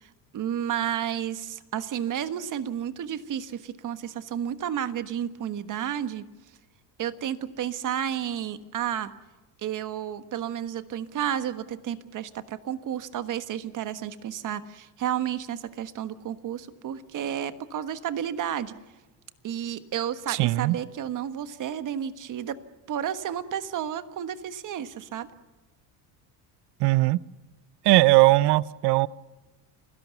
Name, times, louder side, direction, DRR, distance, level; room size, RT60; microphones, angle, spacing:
voice 1, 0.0-6.3 7.0-9.1 9.6-18.7 19.4-22.6 22.9-25.3, right 9 dB, 45° right, 11 dB, 1.5 m, -31 dB
voice 2, 20.3-20.8 26.8-27.2 27.8-29.1, right 20 dB, 65° right, 20 dB, 0.7 m, -19 dB
29.5 x 17.0 x 7.0 m, 1.2 s
cardioid pair, 120°, 43 cm